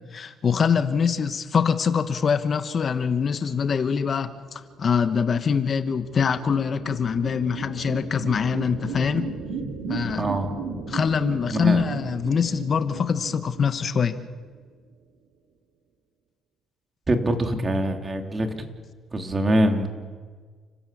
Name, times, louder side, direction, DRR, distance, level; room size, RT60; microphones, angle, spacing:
voice 1, 0.1-9.3 9.9-10.2 10.9-14.2, left 6 dB, 45° left, 10 dB, 1.2 m, -24 dB
sound 1, 4.7-14.5, right 5 dB, 85° right, 2.9 m, -36 dB
voice 2, 10.2-10.5 11.5-12.0 17.1-18.5 19.1-19.9, right 1 dB, 30° right, 4 dB, 3.3 m, -24 dB
30.0 x 13.5 x 8.6 m, 1.5 s
supercardioid pair, 75°, 0 cm